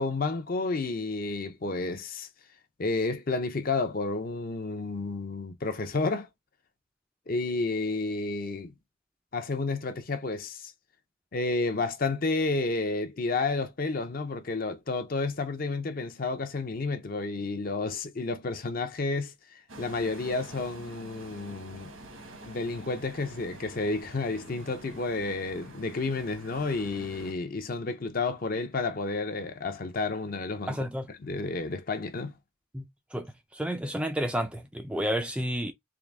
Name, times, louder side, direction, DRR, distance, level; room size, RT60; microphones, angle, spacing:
voice 1, 0.0-2.3 2.8-6.3 7.3-8.7 9.3-10.7 11.3-19.3 19.8-21.9 22.4-32.3, left 3 dB, 45° left, 0.6 m, -31 dB
sound 1, 19.7-27.3, right 1 dB, 85° right, 1.3 m, -47 dB
voice 2, 30.7-31.1 32.7-35.7, equal, 5° right, 0.3 m, -31 dB
3.8 x 2.6 x 3.3 m
head